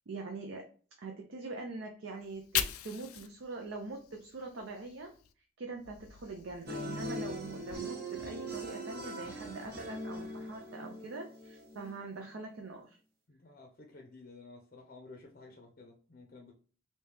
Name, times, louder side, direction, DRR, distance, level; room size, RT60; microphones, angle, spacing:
voice 1, 0.1-0.7 1.0-5.1 5.6-13.0, right 3 dB, 65° right, 2 dB, 0.5 m, -43 dB
Fire, 2.2-5.3 5.7-7.7, left 11 dB, 90° left, 0.4 m, -41 dB
sound 1, 6.7-11.9, right 1 dB, 45° right, 0.9 m, -41 dB
voice 2, 13.3-16.5, left 3 dB, 40° left, 2 dB, 0.6 m, -53 dB
3.2 x 2.7 x 3.3 m, 0.40 s
head